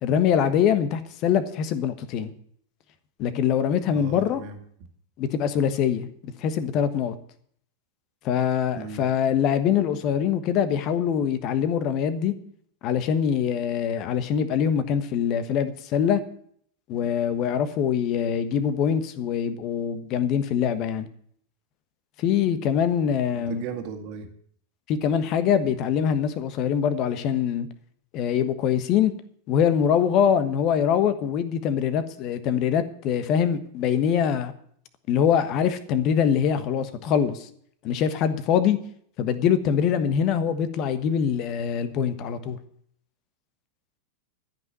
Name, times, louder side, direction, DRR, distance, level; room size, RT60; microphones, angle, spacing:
voice 1, 0.0-2.3 3.2-4.4 5.2-7.1 8.2-12.3 12.8-16.2 16.9-21.1 22.2-23.6 24.9-27.7 28.1-29.1 29.5-34.5 35.1-37.5 37.8-38.8 39.2-42.6, left 8 dB, 40° left, 12 dB, 1.3 m, -23 dB
voice 2, 3.9-4.6 8.7-9.1 23.3-24.3, right 6 dB, 40° right, 4 dB, 2.0 m, -36 dB
13.5 x 6.0 x 9.4 m, 0.62 s
figure-of-eight pair, 90°, 0 cm